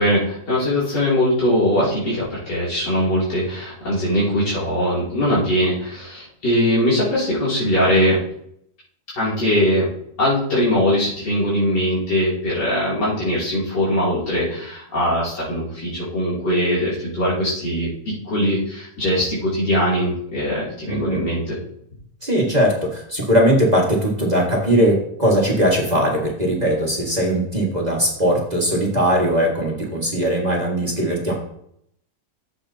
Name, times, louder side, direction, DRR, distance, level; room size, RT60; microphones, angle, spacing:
voice 1, 0.0-8.2 9.1-9.9 10.2-21.6, equal, 90° left, -9 dB, 3.6 m, -21 dB
voice 2, 20.9-21.2 22.2-31.4, equal, 25° right, -2 dB, 1.8 m, -19 dB
13.5 x 7.5 x 2.8 m, 0.71 s
omnidirectional pair, 1.7 m